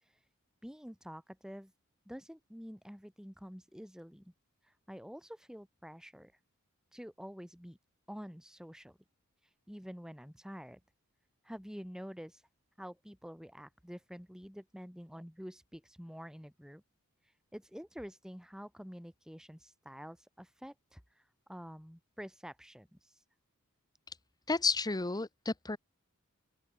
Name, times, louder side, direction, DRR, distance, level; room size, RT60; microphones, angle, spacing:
voice 1, 0.6-1.7 2.1-4.3 4.6-6.3 6.9-7.8 8.1-9.0 9.4-10.8 11.4-12.4 12.8-16.8 17.2-23.2, equal, 5° right, 3.6 m, -48 dB
voice 2, 24.5-25.8, left 3 dB, 20° left, 0.9 m, -31 dB
open air
head